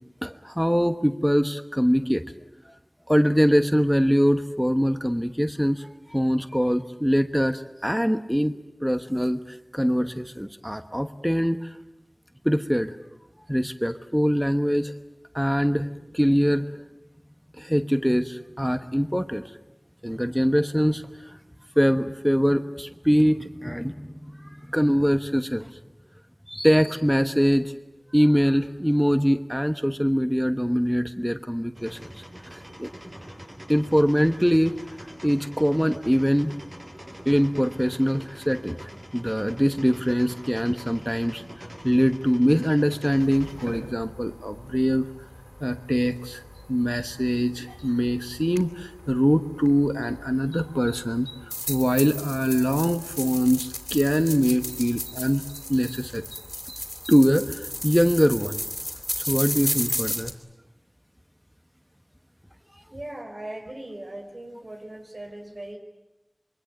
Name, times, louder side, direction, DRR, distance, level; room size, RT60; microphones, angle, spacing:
voice 1, 0.2-2.2 3.1-8.5 8.8-11.7 12.4-13.0 13.5-14.9 15.3-15.9 16.1-16.7 17.6-19.4 20.0-21.4 21.8-23.9 24.7-25.7 26.5-27.7 28.1-32.1 32.5-32.9 33.7-34.7 35.2-36.5 37.2-38.8 39.1-41.4 41.8-45.1 45.6-46.4 46.7-51.3 51.7-55.4 55.7-56.2 57.1-58.6 59.3-60.3, equal, 5° right, 9 dB, 1.1 m, -23 dB
sound 1, 31.7-48.2, equal, 45° right, 6.6 m, -44 dB
sound 2, 43.2-60.3, left 1 dB, 25° left, 3.3 m, -35 dB
voice 2, 62.9-65.8, right 1 dB, 70° right, 4 dB, 5.3 m, -39 dB
26.5 x 23.5 x 9.3 m, 0.96 s
wide cardioid pair, 50°, 0 cm